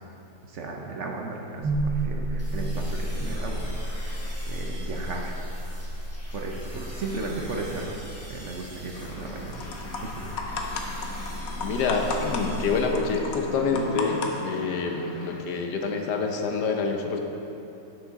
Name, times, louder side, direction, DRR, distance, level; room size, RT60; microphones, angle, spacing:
voice 1, 0.4-3.7 4.0-5.3 6.3-9.7 10.0-10.6, right 3 dB, 55° right, 0 dB, 0.9 m, -36 dB
sound 1, 1.6-13.7, right 1 dB, 35° right, 1.8 m, -33 dB
sound 2, 2.4-13.6, equal, 10° left, 1.2 m, -46 dB
sound 3, 8.9-15.4, left 3 dB, 65° left, 1.2 m, -36 dB
voice 2, 11.6-17.2, left 4 dB, 85° left, 3 dB, 1.4 m, -27 dB
10.0 x 6.0 x 4.1 m, 2.8 s
omnidirectional pair, 1.7 m